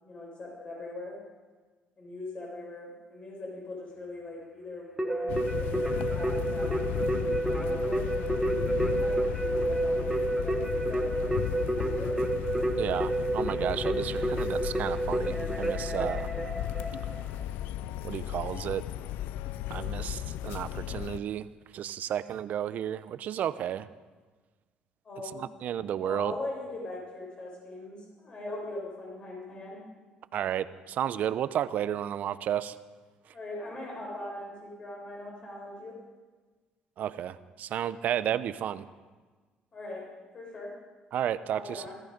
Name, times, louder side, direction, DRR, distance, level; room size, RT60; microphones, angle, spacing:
voice 1, 0.0-1.2 2.0-12.1 25.0-25.4 26.0-29.8 33.3-36.0 39.7-40.1 40.3-40.7 41.3-41.9, left 2 dB, 40° left, -2 dB, 5.9 m, -41 dB
Keyboard (musical), 5.0-17.4, right 2 dB, 10° right, 1.5 m, -30 dB
sound 1, 5.3-21.2, left 12 dB, 90° left, 0.4 m, -35 dB
voice 2, 12.8-16.3 18.0-18.8 19.7-21.5 21.7-23.9 25.3-26.3 30.3-32.8 37.0-38.9 41.1-41.8, right 10 dB, 60° right, 14 dB, 0.7 m, -32 dB
18.0 x 14.0 x 5.3 m, 1.4 s
cardioid pair, 110°, 3 cm